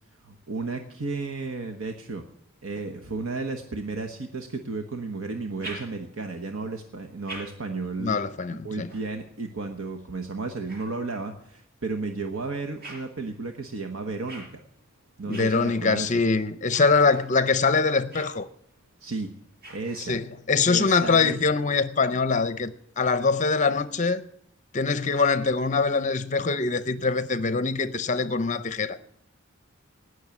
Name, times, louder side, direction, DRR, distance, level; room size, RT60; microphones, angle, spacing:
voice 1, 0.2-2.2 2.6-8.2 8.6-14.6 15.2-16.2 19.0-19.3 19.7-20.2 20.7-21.4, right 3 dB, 80° right, 1.1 m, -33 dB
sound 1, 5.3-6.3 6.9-11.5 12.1-20.4, right 1 dB, 50° right, 5.1 m, -48 dB
voice 2, 8.0-8.9 15.3-18.5 20.1-24.2 24.7-29.0, left 4 dB, 35° left, 0.6 m, -23 dB
18.5 x 6.5 x 8.4 m
head